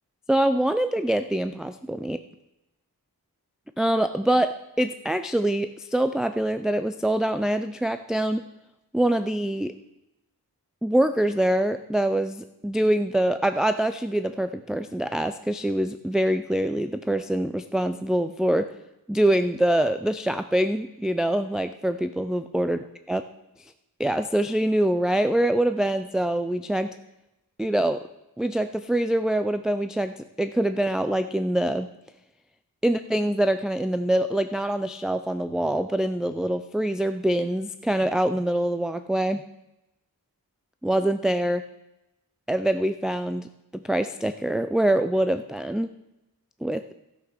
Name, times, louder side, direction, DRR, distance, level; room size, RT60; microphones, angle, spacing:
voice 1, 0.3-2.2 3.8-8.4 8.9-9.7 10.8-18.7 19.1-22.8 23.1-23.2 24.0-26.9 27.6-28.0 28.4-31.9 32.8-39.4 40.8-41.7 42.5-45.9 46.6-46.8, right 1 dB, ahead, 9 dB, 0.3 m, -24 dB
16.0 x 6.0 x 6.5 m, 0.92 s
wide cardioid pair, 165°, 37 cm